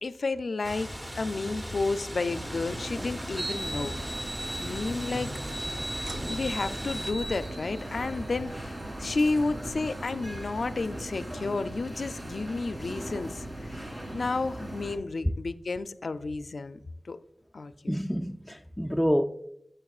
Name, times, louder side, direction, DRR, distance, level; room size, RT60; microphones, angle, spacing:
voice 1, 0.0-5.3 6.3-13.8 14.1-16.8 17.1-17.2 17.5-17.9, left 3 dB, 85° left, 0.4 m, -32 dB
sound 1, 0.6-7.1, equal, 20° right, 0.8 m, -39 dB
sound 2, 2.3-15.0, right 1 dB, 50° right, 2.1 m, -39 dB
sound 3, 3.4-11.0, right 1 dB, 70° right, 0.6 m, -39 dB
voice 2, 17.9-19.2, equal, 5° left, 0.3 m, -28 dB
11.5 x 6.6 x 2.4 m
cardioid pair, 45°, 0 cm